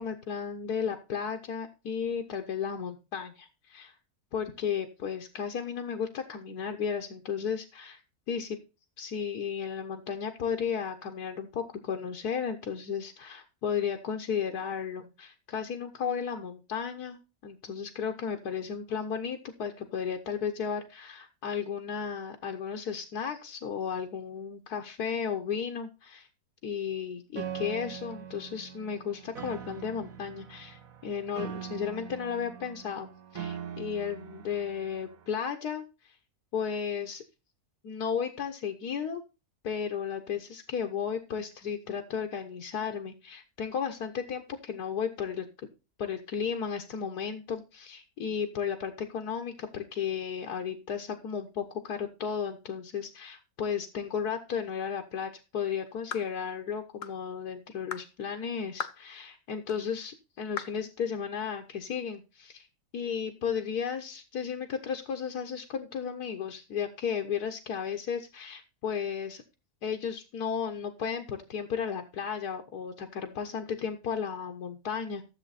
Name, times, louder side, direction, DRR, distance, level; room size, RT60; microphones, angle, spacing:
voice 1, 0.0-3.9 4.3-8.0 8.3-8.6 9.0-17.2 17.4-26.3 26.6-36.2 36.5-37.2 37.8-39.2 39.6-45.5 46.0-62.7 62.9-69.4 69.8-75.3, left 7 dB, 85° left, 5 dB, 1.6 m, -34 dB
Piano, 27.4-35.3, right 8 dB, 65° right, 1.3 m, -42 dB
sound 1, 56.1-56.3 57.0-57.2 57.9-58.1 58.8-59.0 59.7-59.8 60.6-60.8, left 8 dB, 60° left, 1.1 m, -37 dB
13.5 x 7.3 x 4.1 m, 0.30 s
omnidirectional pair, 1.6 m